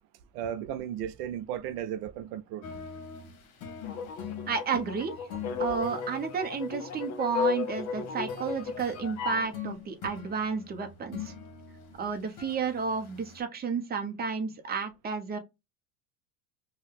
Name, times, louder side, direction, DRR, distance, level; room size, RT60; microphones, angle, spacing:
voice 1, 0.3-2.7, right 10 dB, 75° right, 0.6 m, -35 dB
sound 1, 2.6-13.4, left 7 dB, 65° left, 1.1 m, -44 dB
sound 2, 3.8-9.5, left 5 dB, 35° left, 0.6 m, -35 dB
voice 2, 4.5-5.1 5.6-11.3 12.0-15.4, right 5 dB, 20° right, 0.7 m, -31 dB
2.7 x 2.3 x 3.5 m
supercardioid pair, 95°, 47 cm